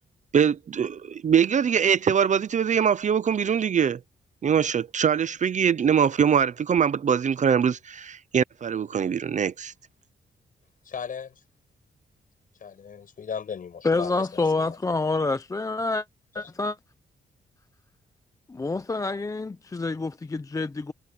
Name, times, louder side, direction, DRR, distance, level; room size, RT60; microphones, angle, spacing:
voice 1, 0.3-4.0 4.4-9.7, right 7 dB, 45° right, 0.7 m, -23 dB
voice 2, 10.8-11.3 12.6-15.1 16.4-16.5, left 7 dB, 55° left, 7.6 m, -37 dB
voice 3, 13.8-16.1 16.4-16.8 18.5-20.9, left 3 dB, 20° left, 0.6 m, -27 dB
cardioid pair, 115°, 17 cm